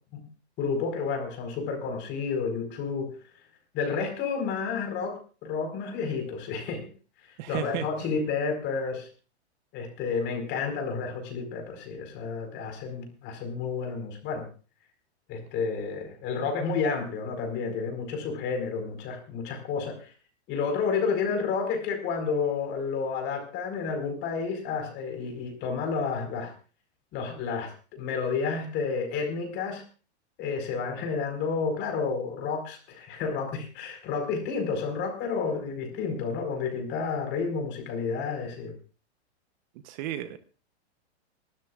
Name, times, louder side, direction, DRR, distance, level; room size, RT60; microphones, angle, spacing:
voice 1, 0.6-3.1 3.7-6.9 7.5-9.1 9.7-14.4 15.3-20.1 20.5-26.5 27.1-29.8 30.4-38.7, left 5 dB, 35° left, 5 dB, 4.6 m, -30 dB
voice 2, 7.4-8.1 39.8-40.4, right 12 dB, 45° right, 12 dB, 0.9 m, -34 dB
24.5 x 13.0 x 2.4 m, 0.36 s
hypercardioid pair, 140°, 34 cm